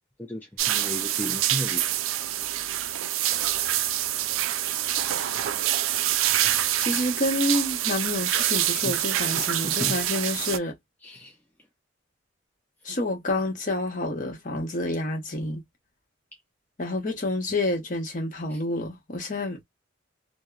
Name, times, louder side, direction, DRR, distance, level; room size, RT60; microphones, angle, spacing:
voice 1, 0.2-2.0 8.8-8.9 9.4-10.0 11.0-11.4 18.5-18.6, left 1 dB, 10° left, 0.3 m, -35 dB
sound 1, 0.6-10.6, right 12 dB, 90° right, 0.4 m, -26 dB
voice 2, 6.8-10.7 12.8-15.6 16.8-19.6, left 2 dB, 40° left, 0.9 m, -28 dB
2.8 x 2.0 x 2.3 m
head